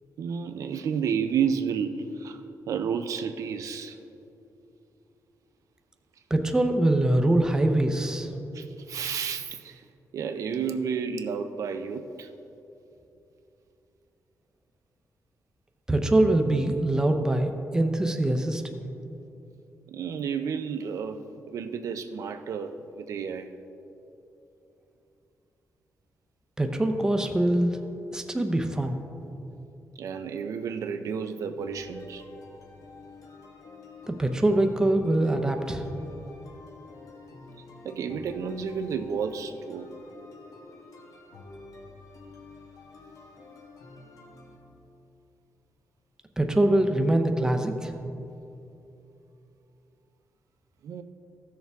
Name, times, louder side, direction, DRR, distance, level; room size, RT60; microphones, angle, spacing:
voice 1, 0.2-2.4 2.7-4.0 8.5-9.8 10.1-12.3 19.9-21.2 21.5-23.5 30.0-32.2 37.8-39.9 50.8-51.0, right 6 dB, 70° right, 8 dB, 0.5 m, -31 dB
voice 2, 6.3-8.3 15.9-18.7 26.6-27.8 28.1-29.0 34.1-35.8 46.4-47.9, right 1 dB, 10° right, 5 dB, 0.6 m, -23 dB
sound 1, 31.6-44.6, left 3 dB, 80° left, 1.4 m, -49 dB
14.5 x 6.6 x 3.5 m, 2.9 s
wide cardioid pair, 135°, 6 cm